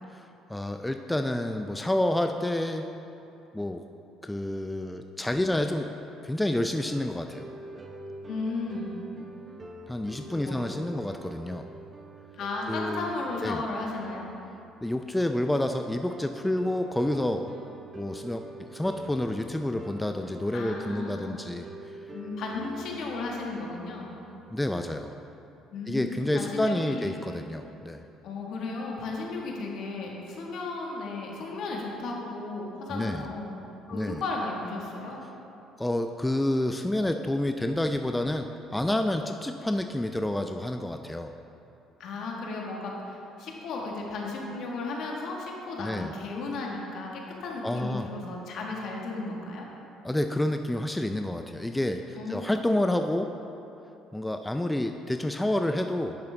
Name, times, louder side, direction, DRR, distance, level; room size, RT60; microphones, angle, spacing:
voice 1, 0.1-2.9 3.5-3.8 4.2-5.9 6.2-7.5 9.9-11.7 12.7-13.1 13.4-13.6 14.8-17.5 18.0-21.9 24.5-25.1 25.9-28.1 32.9-33.3 33.9-34.2 35.8-41.3 45.8-46.1 47.6-48.1 50.0-53.3 54.1-56.2, left 1 dB, 10° left, 6 dB, 0.4 m, -29 dB
sound 1, 6.8-24.8, right 1 dB, 30° right, 0.8 m, -45 dB
voice 2, 8.3-8.9 10.4-10.6 12.4-14.3 20.5-21.4 22.1-24.1 25.7-27.2 28.2-33.5 33.9-35.2 42.0-47.1 47.4-49.6 52.1-52.9, left 3 dB, 65° left, -1 dB, 1.4 m, -35 dB
9.9 x 6.7 x 3.3 m, 2.9 s
supercardioid pair, 65°, 0 cm